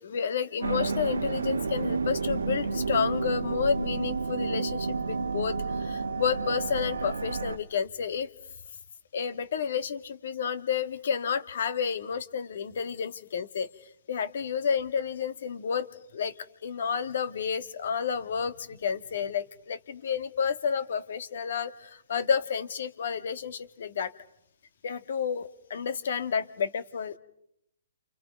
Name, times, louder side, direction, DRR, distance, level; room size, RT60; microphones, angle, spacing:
voice 1, 0.0-8.3 9.1-13.7 14.1-16.3 16.6-24.1 24.8-27.2, left 6 dB, 60° left, 12 dB, 1.9 m, -30 dB
sound 1, 0.6-7.6, right 4 dB, 85° right, 1.3 m, -30 dB
30.0 x 29.0 x 5.3 m, 0.76 s
hypercardioid pair, 145°, 0 cm